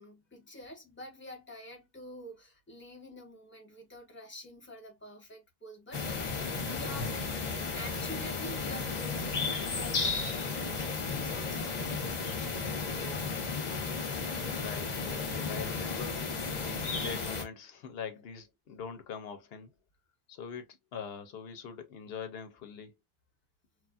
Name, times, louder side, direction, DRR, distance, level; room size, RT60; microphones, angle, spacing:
voice 1, 0.0-7.3 7.6-13.5, equal, 10° left, 1.0 m, -48 dB
sound 1, 5.9-17.4, left 4 dB, 45° left, 0.8 m, -34 dB
voice 2, 14.4-16.2 16.6-19.7 20.3-22.9, left 6 dB, 75° left, 0.8 m, -43 dB
3.1 x 2.3 x 2.4 m
omnidirectional pair, 1.0 m